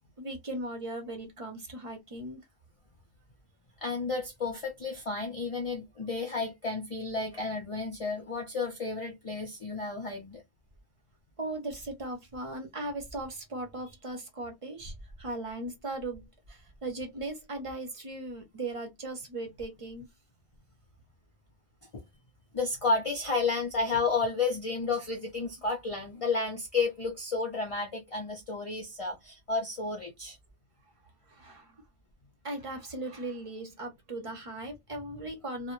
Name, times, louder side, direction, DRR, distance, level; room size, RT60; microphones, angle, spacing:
voice 1, 0.2-2.4 11.4-20.1 31.3-31.8 32.4-35.7, right 2 dB, 40° right, 0.4 m, -38 dB
voice 2, 3.8-10.4 21.9-22.1 22.5-30.4, left 3 dB, 45° left, 0.4 m, -32 dB
2.1 x 2.0 x 2.9 m
omnidirectional pair, 1.3 m